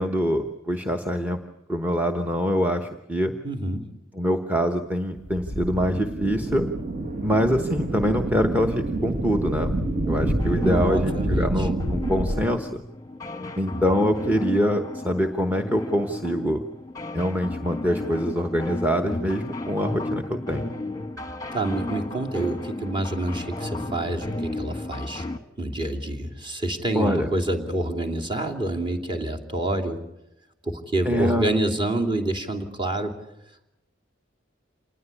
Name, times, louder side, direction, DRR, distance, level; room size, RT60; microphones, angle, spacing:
voice 1, 0.0-1.4 1.7-3.3 4.1-6.6 7.2-9.7 10.1-12.8 13.6-16.6 17.1-20.6 26.9-27.3 31.0-31.5, equal, 10° right, 6 dB, 1.0 m, -24 dB
voice 2, 3.4-3.9 10.6-11.7 21.5-25.3 25.6-30.0 30.6-33.1, right 1 dB, 25° right, 2 dB, 2.9 m, -27 dB
sound 1, 5.2-12.4, right 1 dB, 45° right, 1.4 m, -27 dB
sound 2, 10.4-25.4, left 2 dB, 20° left, 1.2 m, -34 dB
27.0 x 20.0 x 8.4 m, 0.89 s
head